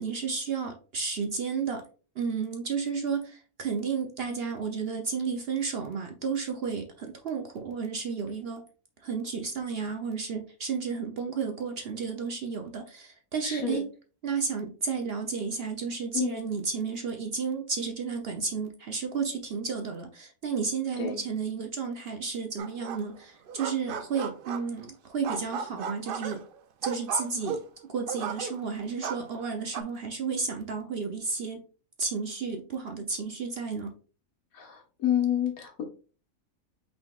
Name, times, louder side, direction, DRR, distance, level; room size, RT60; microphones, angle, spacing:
voice 1, 0.0-1.8 2.2-8.6 9.0-13.9 14.2-26.4 26.8-27.6 27.9-31.6 32.0-34.0, right 5 dB, 55° right, 4 dB, 0.7 m, -32 dB
voice 2, 13.4-13.8 16.1-16.4 21.0-21.2 34.5-35.8, left 10 dB, 75° left, 2 dB, 1.6 m, -29 dB
sound 1, 22.6-23.2 23.5-24.9 25.2-28.7 29.0-29.8, right 7 dB, 85° right, 0.4 m, -35 dB
5.6 x 3.9 x 2.3 m, 0.37 s
omnidirectional pair, 1.5 m